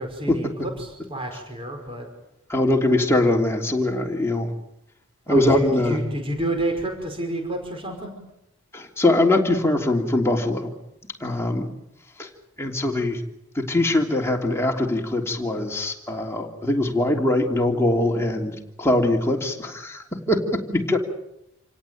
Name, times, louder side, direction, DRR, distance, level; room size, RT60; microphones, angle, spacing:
voice 1, 0.0-2.1 5.3-8.1, right 1 dB, 25° right, 3 dB, 5.1 m, -29 dB
voice 2, 2.5-4.5 5.3-6.0 8.7-10.7 11.2-11.7 12.2-12.3 12.6-13.2 13.5-21.0, left 1 dB, 10° left, 1 dB, 3.2 m, -22 dB
28.5 x 17.5 x 9.2 m, 0.85 s
head